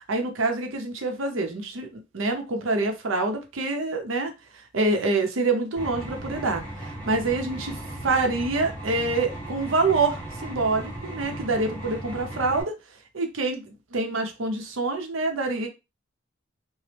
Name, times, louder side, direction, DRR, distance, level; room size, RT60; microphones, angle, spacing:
voice 1, 0.1-4.3 4.7-6.6 7.1-12.7 13.1-15.7, right 3 dB, 85° right, 4 dB, 0.7 m, -26 dB
sound 1, 5.8-12.6, right 1 dB, 5° left, 1.2 m, -37 dB
3.0 x 2.1 x 3.3 m, 0.26 s
head